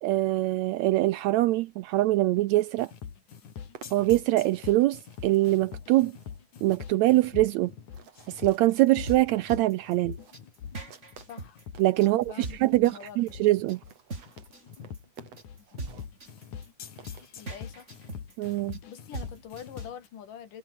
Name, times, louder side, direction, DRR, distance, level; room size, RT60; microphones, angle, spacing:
voice 1, 0.0-2.9 3.9-6.1 6.6-7.7 8.3-10.2 11.8-13.8 18.4-18.8, right 17 dB, 80° right, 1.6 m, -24 dB
sound 1, 2.8-20.1, left 7 dB, 70° left, 4.1 m, -44 dB
sound 2, 3.1-12.0 12.6-12.7 12.9-13.0 13.2-13.3 13.5-17.9, right 7 dB, 55° right, 3.5 m, -54 dB
sound 3, 8.9-19.9, right 2 dB, 20° right, 3.8 m, -41 dB
voice 2, 11.3-11.6 12.0-13.2 17.4-17.9 18.9-20.6, left 8 dB, 85° left, 4.0 m, -44 dB
omnidirectional pair, 3.7 m